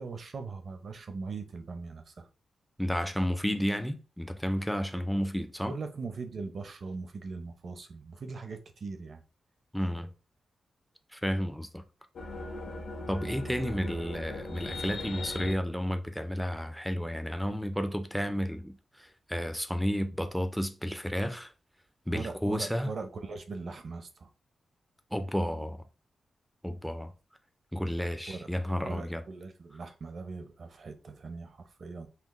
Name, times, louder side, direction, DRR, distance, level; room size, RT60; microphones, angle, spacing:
voice 1, 0.0-2.3 5.6-9.2 22.1-24.3 28.3-28.5 28.8-32.1, right 4 dB, 45° right, 0.6 m, -40 dB
voice 2, 2.8-5.8 9.7-10.1 11.1-11.8 13.1-21.5 22.1-22.9 25.1-25.8 26.6-27.1 27.7-29.2, equal, ahead, 0.4 m, -32 dB
sound 1, 12.2-15.5, left 2 dB, 70° left, 1.0 m, -38 dB
5.7 x 2.0 x 3.1 m
wide cardioid pair, 160°, 0 cm